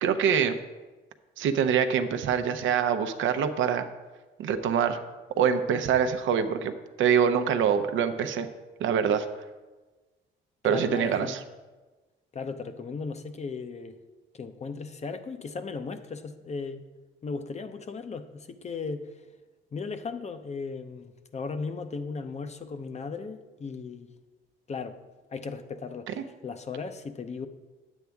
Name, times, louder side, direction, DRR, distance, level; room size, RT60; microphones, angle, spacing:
voice 1, 0.0-0.6 1.4-3.9 4.4-5.0 5.4-6.7 7.0-8.5 8.8-9.3 10.6-11.4 26.1-26.2, right 7 dB, 80° right, 8 dB, 0.7 m, -25 dB
voice 2, 10.6-11.4 12.3-14.0 14.3-16.8 17.2-19.1 19.7-24.1 24.7-25.0 25.3-27.5, left 4 dB, 35° left, 9 dB, 0.6 m, -36 dB
9.1 x 8.2 x 3.5 m, 1.2 s
cardioid pair, 90°, 20 cm